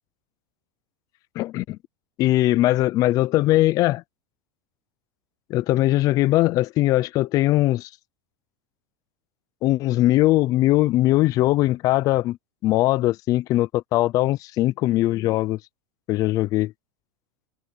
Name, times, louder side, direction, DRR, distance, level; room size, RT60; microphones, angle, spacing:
voice 1, 1.4-1.8 2.2-4.0 5.5-7.9 9.6-12.4 12.6-15.6 16.1-16.7, left 16 dB, 35° left, 0.7 m, -20 dB
supercardioid pair, 145°, 10 cm